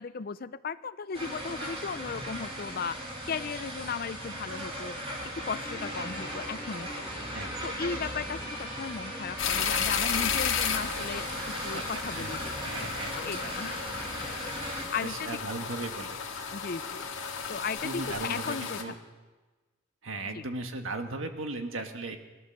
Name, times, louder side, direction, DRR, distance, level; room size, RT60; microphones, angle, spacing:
voice 1, 0.0-5.0 5.3-7.1 7.6-15.4 16.5-17.1 17.5-18.8 20.3-20.4, left 5 dB, 50° left, 15 dB, 0.5 m, -37 dB
sound 1, 1.1-14.8, right 1 dB, 30° right, 3.1 m, -38 dB
Guitar, 5.6-12.3, left 2 dB, 20° left, 1.8 m, -46 dB
voice 2, 7.3-7.7 11.4-11.8 12.1-13.6 14.7-16.2 17.8-18.9 20.0-22.2, right 2 dB, 85° right, 6 dB, 1.5 m, -38 dB
sound 2, 9.4-18.8, left 6 dB, 80° left, 1.8 m, -33 dB
18.0 x 11.0 x 6.6 m, 1.2 s
head